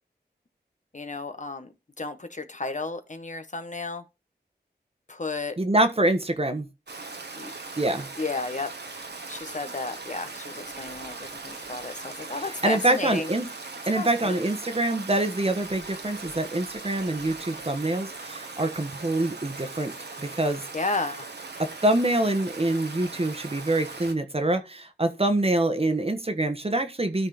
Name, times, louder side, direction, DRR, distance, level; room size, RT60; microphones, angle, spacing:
voice 1, 0.9-1.7 2.0-4.0 5.1-5.6 7.4-7.5 8.2-13.3 13.9-14.4 20.7-21.3, left 3 dB, 45° left, 1.1 m, -33 dB
voice 2, 5.6-6.7 7.8-8.1 12.6-13.5 13.9-20.6 21.6-27.3, right 1 dB, 35° right, 1.3 m, -25 dB
Stream, 6.9-24.1, right 3 dB, 75° right, 1.3 m, -40 dB
13.0 x 4.3 x 4.0 m
wide cardioid pair, 55°, 18 cm